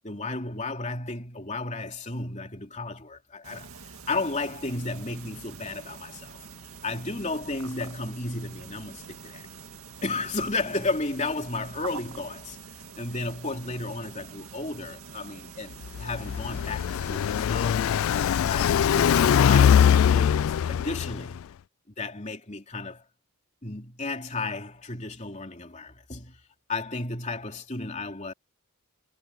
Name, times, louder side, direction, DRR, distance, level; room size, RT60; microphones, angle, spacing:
voice 1, 0.0-6.4 6.8-9.5 10.0-12.6 12.9-17.8 18.5-21.4 22.0-23.0 23.6-26.4 26.7-28.3, left 3 dB, 30° left, 3.1 m, -33 dB
sound 1, 3.4-20.1, right 5 dB, 75° right, 2.0 m, -45 dB
Car passing by, 15.8-21.4, left 8 dB, 65° left, 0.3 m, -22 dB
head